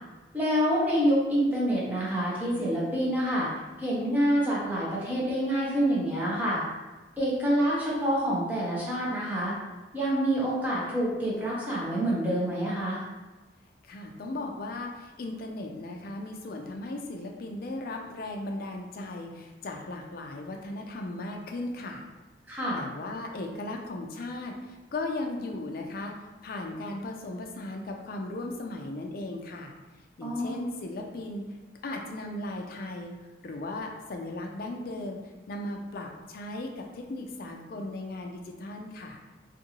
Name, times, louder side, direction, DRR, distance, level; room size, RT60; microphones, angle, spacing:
voice 1, 0.3-3.5 3.8-6.6 7.2-9.5 9.9-13.0 22.5-22.8 30.2-30.6, equal, 10° right, -7 dB, 0.7 m, -27 dB
voice 2, 13.9-22.0 22.8-26.2 26.4-29.7 30.2-31.4 31.8-33.1 33.4-35.2 35.5-39.2, left 2 dB, 50° left, 2 dB, 0.4 m, -37 dB
2.6 x 2.5 x 2.8 m, 1.2 s
head